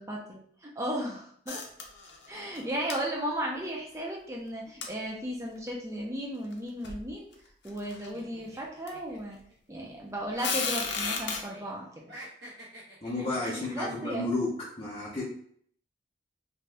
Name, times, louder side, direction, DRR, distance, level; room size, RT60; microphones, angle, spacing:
voice 1, 0.0-1.6 2.3-7.3 7.6-9.4 9.7-12.1 13.5-14.3, equal, 15° right, -1 dB, 0.5 m, -35 dB
sound 1, 1.5-2.3 2.5-2.6 2.9-3.0 4.8-4.9 5.7-5.8 6.5-6.6 6.8-7.1 7.7-8.1 8.9-9.0 10.4-11.4, left 5 dB, 90° left, 0.6 m, -32 dB
sound 2, 8.1-10.0 10.3-11.7 12.0-14.0, right 1 dB, 75° right, 1.0 m, -48 dB
voice 2, 13.0-14.5 14.8-15.2, left 2 dB, 30° left, -9 dB, 0.6 m, -32 dB
2.7 x 2.3 x 3.2 m, 0.63 s
head